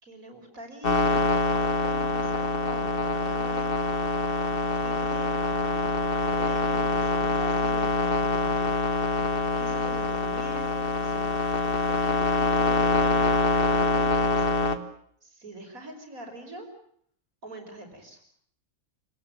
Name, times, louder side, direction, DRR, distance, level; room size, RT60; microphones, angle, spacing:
voice 1, 0.0-4.0 4.8-5.7 6.2-8.6 9.6-14.8 15.2-16.7 17.4-18.2, right 1 dB, 80° right, 4 dB, 6.2 m, -44 dB
sound 1, 0.8-14.8, left 3 dB, 40° left, 1.8 m, -25 dB
28.0 x 18.5 x 8.8 m, 0.65 s
omnidirectional pair, 1.4 m